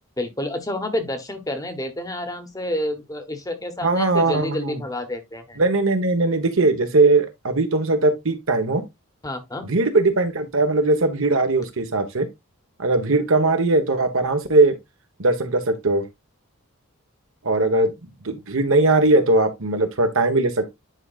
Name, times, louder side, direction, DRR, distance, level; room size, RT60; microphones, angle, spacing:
voice 1, 0.2-5.6 9.2-9.6, left 1 dB, 15° left, 1.0 m, -29 dB
voice 2, 3.8-4.8 5.6-8.8 9.7-12.3 12.8-14.8 15.2-16.0 17.4-17.9 18.2-20.7, right 2 dB, 65° right, 1.2 m, -19 dB
9.8 x 5.0 x 2.4 m
head